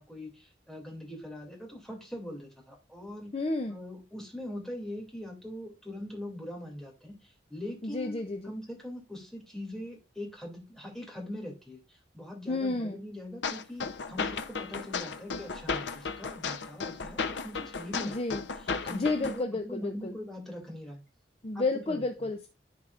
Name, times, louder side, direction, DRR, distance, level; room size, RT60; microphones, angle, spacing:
voice 1, 0.0-3.3 3.7-21.0 21.5-22.3, left 1 dB, 5° left, 2.4 m, -42 dB
voice 2, 3.3-3.8 7.8-8.5 12.5-13.0 18.0-18.4 18.9-20.1 21.4-22.5, left 2 dB, 35° left, 0.5 m, -31 dB
sound 1, 13.4-19.4, left 5 dB, 80° left, 0.7 m, -35 dB
13.5 x 4.7 x 2.4 m
head